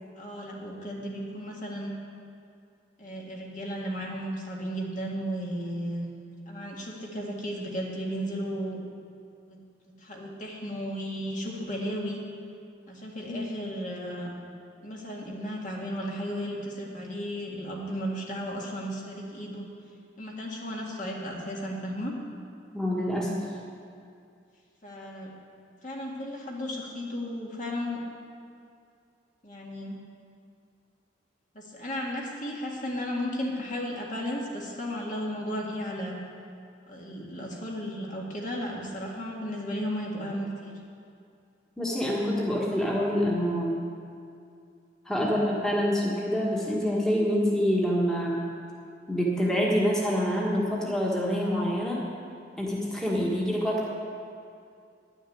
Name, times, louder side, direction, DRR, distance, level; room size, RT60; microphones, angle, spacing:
voice 1, 0.1-1.9 3.0-6.1 6.5-8.8 9.5-9.6 9.9-12.2 12.9-14.3 14.8-19.7 20.2-22.1 24.8-25.3 25.8-28.0 29.4-30.0 31.5-36.2 36.9-40.8, equal, 45° left, -2 dB, 1.8 m, -34 dB
voice 2, 22.7-23.4 41.8-43.8 45.0-48.4 49.1-52.0 52.6-54.0, equal, 5° left, -4 dB, 1.5 m, -26 dB
11.0 x 6.5 x 9.2 m, 2.4 s
head